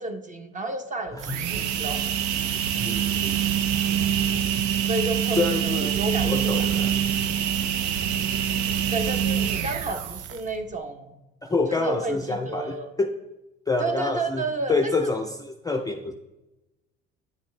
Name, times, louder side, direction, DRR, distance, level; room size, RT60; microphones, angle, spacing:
voice 1, 0.0-2.1 4.8-6.7 8.9-11.2 11.7-12.9 13.8-15.1, right 2 dB, 25° right, 6 dB, 1.0 m, -31 dB
sound 1, 1.1-10.6, right 9 dB, 70° right, 0.6 m, -25 dB
voice 2, 2.7-3.4 5.4-5.9 6.2-6.9 11.4-13.2 13.7-14.4 14.7-16.1, left 3 dB, 10° left, 6 dB, 0.5 m, -27 dB
9.3 x 5.9 x 3.3 m, 1.0 s
supercardioid pair, 75°, 30 cm